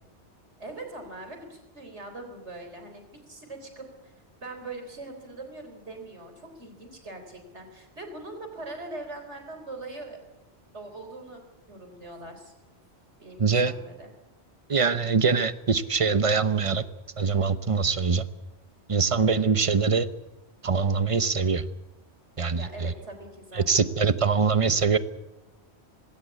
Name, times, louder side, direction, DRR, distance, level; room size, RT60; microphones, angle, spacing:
voice 1, 0.6-4.1 4.4-10.2 10.7-11.4 11.7-12.5 13.2-14.1 19.6-19.7 22.5-23.8, right 2 dB, 85° right, 5 dB, 4.2 m, -42 dB
voice 2, 13.4-13.7 14.7-16.8 17.2-18.2 18.9-20.1 20.6-21.6 22.4-22.9 23.6-25.0, right 5 dB, 30° right, 13 dB, 0.9 m, -23 dB
19.5 x 17.5 x 8.4 m, 0.98 s
omnidirectional pair, 1.1 m